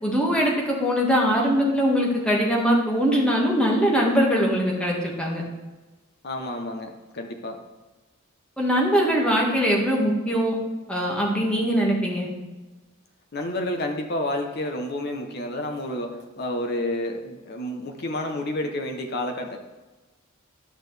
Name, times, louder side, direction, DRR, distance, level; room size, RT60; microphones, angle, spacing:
voice 1, 0.0-5.4 8.6-10.5 10.9-12.3, equal, 5° left, -3 dB, 1.7 m, -22 dB
voice 2, 6.2-7.7 13.3-19.6, left 1 dB, 50° left, 4 dB, 0.8 m, -30 dB
11.5 x 6.4 x 3.3 m, 1.2 s
head